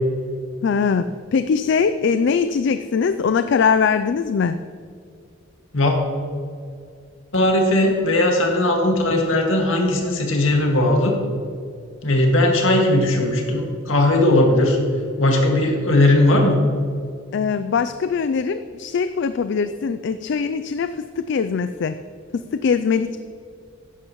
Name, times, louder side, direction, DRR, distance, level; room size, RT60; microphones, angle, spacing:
voice 1, 0.6-4.6 17.3-22.0 22.3-23.2, left 6 dB, 60° left, 11 dB, 0.3 m, -21 dB
voice 2, 7.3-11.2 12.0-14.8 15.2-16.6, left 1 dB, 75° left, 1 dB, 1.9 m, -18 dB
13.5 x 10.5 x 3.1 m, 2.3 s
head